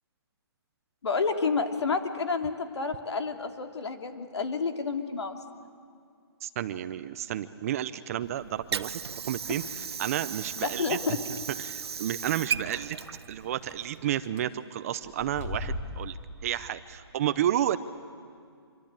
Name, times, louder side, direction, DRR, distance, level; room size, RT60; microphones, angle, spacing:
voice 1, 1.0-5.4 10.6-11.2, left 4 dB, 80° left, 6 dB, 2.9 m, -29 dB
voice 2, 6.4-11.0 11.3-13.0 13.3-16.2 16.4-17.8, right 11 dB, 35° right, 13 dB, 0.7 m, -31 dB
Water / Sink (filling or washing), 8.2-14.2, right 6 dB, 70° right, 1.1 m, -36 dB
sound 1, 9.8-10.1 10.8-10.9 11.1-11.2 11.6-11.7 13.6-13.7 14.1-14.4 15.0-16.4, left 2 dB, 30° left, 3.4 m, -37 dB
26.0 x 24.5 x 8.9 m, 2.2 s
hypercardioid pair, 160°, 14 cm